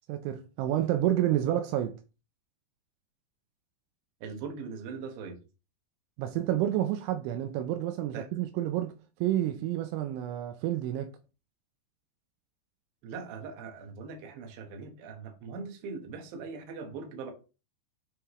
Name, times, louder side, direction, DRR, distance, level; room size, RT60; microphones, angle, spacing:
voice 1, 0.1-2.0 6.2-11.1, right 12 dB, 85° right, 2.9 m, -29 dB
voice 2, 4.2-5.4 8.1-8.3 13.0-17.3, right 5 dB, 65° right, 2.6 m, -41 dB
9.6 x 3.6 x 3.1 m
omnidirectional pair, 5.4 m